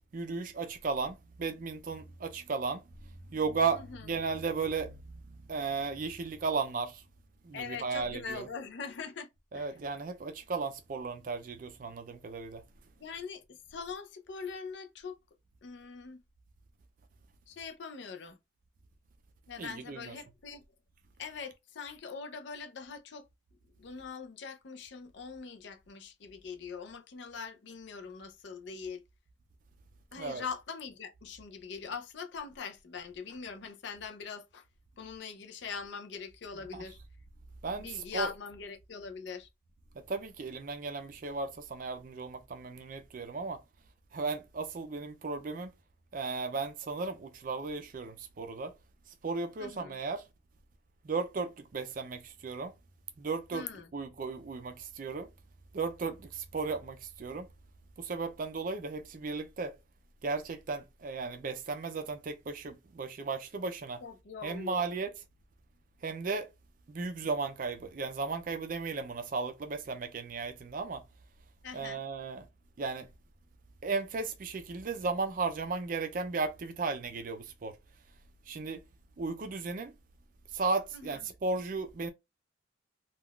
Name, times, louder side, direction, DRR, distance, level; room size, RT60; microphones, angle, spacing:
voice 1, 0.1-2.8 3.3-7.0 7.4-8.5 9.5-12.6 19.6-20.1 30.2-30.4 36.7-36.8 37.6-38.3 40.1-43.6 44.1-45.7 46.1-48.7 49.2-50.3 51.0-52.7 53.2-53.7 53.9-55.3 55.7-57.5 58.0-59.8 60.2-64.0 64.4-65.1 66.0-66.5 66.9-71.0 71.7-72.5 72.8-73.1 73.8-77.8 78.5-78.8 79.2-79.9 80.5-82.1, right 4 dB, 45° right, 0.4 m, -35 dB
voice 2, 3.7-4.1 7.5-9.3 9.5-9.8 13.0-15.2 15.6-16.2 17.5-18.4 19.5-20.6 21.2-23.3 23.8-29.0 30.1-34.7 35.0-37.0 37.7-39.5 49.6-50.0 53.5-53.9 64.0-64.9 71.6-72.0 80.9-81.3, left 5 dB, 60° left, 0.5 m, -42 dB
3.5 x 2.3 x 2.3 m
head